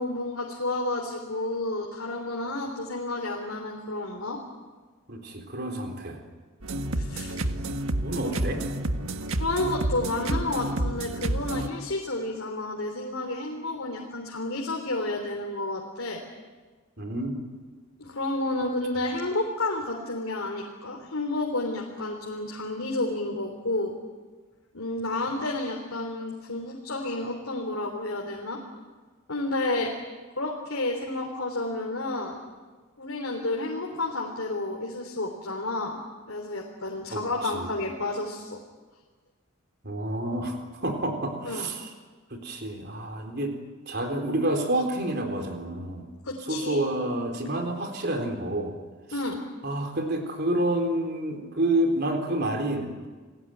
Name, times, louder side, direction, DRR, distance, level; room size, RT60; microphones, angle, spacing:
voice 1, 0.0-4.4 7.0-7.4 8.1-8.4 9.4-16.2 18.0-23.9 24.7-28.6 29.3-29.9 30.4-32.4 33.0-36.0 36.3-38.6 41.4-41.7 46.2-46.8 49.1-49.4, left 2 dB, 70° left, 0 dB, 3.5 m, -31 dB
voice 2, 5.1-6.2 7.4-8.6 17.0-17.4 37.1-37.7 39.8-41.9 42.3-43.6 43.9-46.0 46.5-48.8 49.6-53.1, right 1 dB, 45° right, 4 dB, 4.1 m, -29 dB
sound 1, 6.6-11.7, right 1 dB, 70° right, 1.6 m, -29 dB
29.5 x 19.0 x 9.4 m, 1.4 s
head